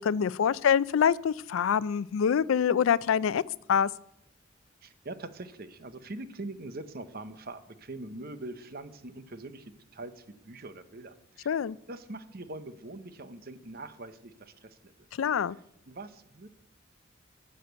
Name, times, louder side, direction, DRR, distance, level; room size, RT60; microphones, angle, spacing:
voice 1, 0.0-3.4 3.7-3.9 11.5-11.8 15.2-15.6, left 7 dB, 90° left, 20 dB, 0.4 m, -25 dB
voice 2, 4.8-11.5 11.9-14.9 15.9-16.5, right 2 dB, 50° right, 12 dB, 0.8 m, -43 dB
12.0 x 6.6 x 8.0 m, 0.84 s
head